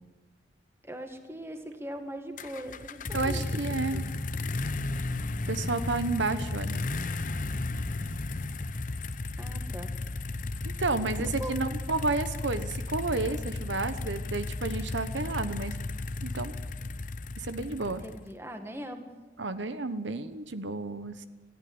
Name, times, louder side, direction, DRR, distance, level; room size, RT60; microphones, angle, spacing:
voice 1, 0.8-3.6 3.9-4.0 9.4-9.9 11.2-11.7 17.8-19.1, equal, 15° right, 6 dB, 1.8 m, -41 dB
sound 1, 2.4-18.3, left 2 dB, 45° left, 0.8 m, -34 dB
voice 2, 3.1-4.0 5.5-6.8 10.8-15.8 16.2-16.5 17.4-18.0 19.4-21.3, right 3 dB, 75° right, 11 dB, 1.0 m, -31 dB
19.0 x 15.0 x 9.6 m, 1.2 s
head